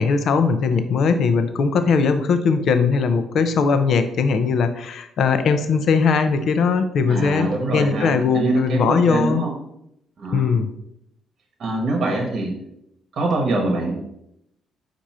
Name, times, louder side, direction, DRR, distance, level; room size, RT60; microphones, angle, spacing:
voice 1, 0.0-9.4 10.3-10.7, left 5 dB, 65° left, 9 dB, 0.5 m, -20 dB
voice 2, 7.1-9.5 10.2-10.6 11.6-12.5 13.1-14.0, right 2 dB, 60° right, 1 dB, 0.9 m, -24 dB
4.7 x 2.5 x 4.2 m, 0.79 s
cardioid pair, 90°, 0 cm